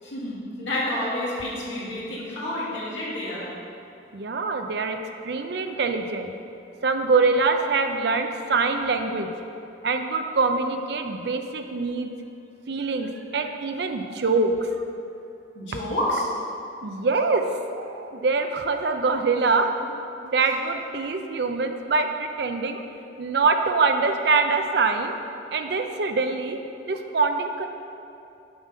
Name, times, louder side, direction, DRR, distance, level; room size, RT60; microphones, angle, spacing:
voice 1, 0.0-3.5 15.6-16.2, left 1 dB, 85° left, -6 dB, 1.9 m, -29 dB
voice 2, 4.1-5.0 5.2-6.3 6.8-9.3 9.8-12.1 12.7-14.9 16.8-17.4 17.7-19.8 20.2-22.8 23.2-25.2 25.5-26.6 26.9-27.7, right 4 dB, 60° right, 6 dB, 0.5 m, -24 dB
6.9 x 5.3 x 5.4 m, 2.7 s
head